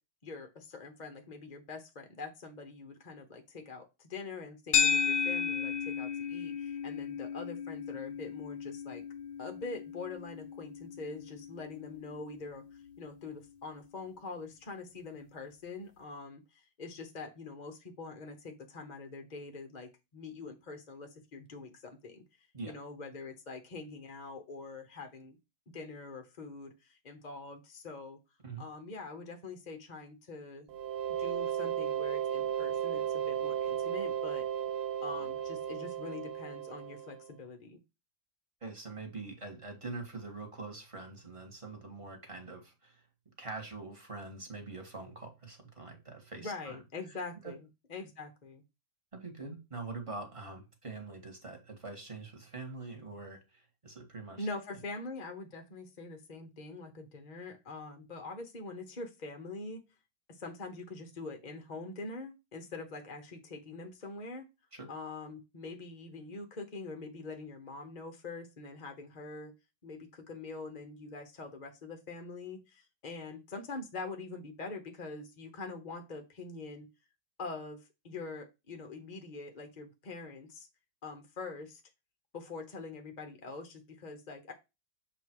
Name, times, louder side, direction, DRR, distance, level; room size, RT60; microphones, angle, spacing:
voice 1, 0.2-9.0 9.4-12.6 13.0-25.4 25.7-28.2 28.6-30.7 31.1-34.5 35.0-37.8 46.4-48.6 54.4-59.8 60.3-64.5 64.9-69.5 69.8-76.9 77.4-80.7 81.0-81.8 82.3-84.5, left 3 dB, 40° left, 6 dB, 0.6 m, -44 dB
sound 1, 4.7-13.2, left 6 dB, 65° left, 1.1 m, -34 dB
sound 2, 30.7-37.3, right 9 dB, 60° right, 0.9 m, -34 dB
voice 2, 38.6-43.0 43.4-46.8 47.4-47.5 49.1-54.5 64.7-64.9, right 3 dB, 20° right, 3 dB, 1.5 m, -44 dB
7.1 x 3.0 x 4.6 m, 0.25 s
omnidirectional pair, 2.0 m